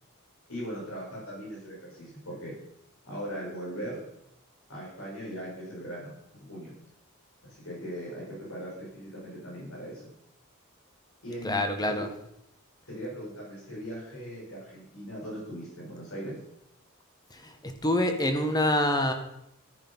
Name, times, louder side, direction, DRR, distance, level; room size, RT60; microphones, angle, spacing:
voice 1, 0.5-2.5 3.0-4.0 4.7-6.7 7.4-10.0 11.2-12.0 12.9-16.4, equal, 85° left, -4 dB, 6.3 m, -39 dB
voice 2, 11.4-12.1 17.3-19.1, left 1 dB, 20° left, 6 dB, 1.6 m, -26 dB
13.5 x 10.0 x 5.6 m, 0.80 s
head